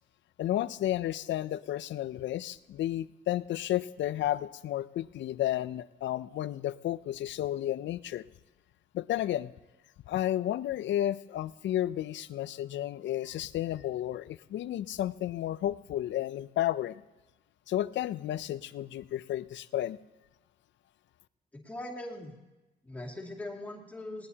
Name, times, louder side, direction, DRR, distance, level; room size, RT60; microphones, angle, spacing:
voice 1, 0.4-8.3 8.9-9.5 10.1-17.0 17.7-20.0, left 12 dB, 65° left, 16 dB, 0.5 m, -32 dB
voice 2, 21.5-22.3 22.8-24.3, left 1 dB, 5° left, -3 dB, 2.5 m, -40 dB
18.5 x 18.5 x 2.9 m, 1.1 s
cardioid pair, 90°, 20 cm